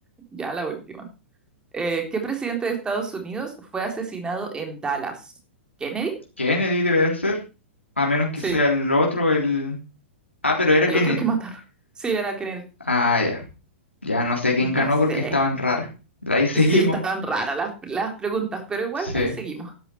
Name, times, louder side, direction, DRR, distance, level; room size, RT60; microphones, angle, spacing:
voice 1, 0.3-1.1 1.7-5.3 5.8-6.1 8.4-8.6 10.9-11.6 12.0-12.6 14.6-15.4 16.5-19.7, right 4 dB, 15° right, 3 dB, 3.6 m, -28 dB
voice 2, 6.4-7.4 8.0-9.8 10.4-11.2 12.9-13.4 14.0-15.9 16.3-17.0 19.0-19.3, left 2 dB, 85° left, -2 dB, 3.5 m, -21 dB
12.5 x 10.5 x 4.5 m, 0.32 s
figure-of-eight pair, 105°, 6 cm